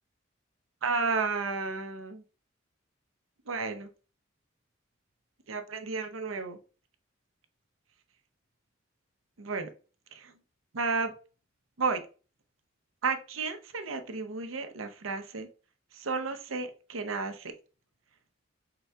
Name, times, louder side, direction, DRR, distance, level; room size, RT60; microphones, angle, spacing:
voice 1, 0.8-2.2 3.5-3.9 5.5-6.6 9.4-9.7 10.1-10.3 10.7-11.1 11.8-12.0 13.0-15.5 15.9-17.5, right 4 dB, 90° right, 7 dB, 0.7 m, -32 dB
5.6 x 3.8 x 2.2 m, 0.35 s
head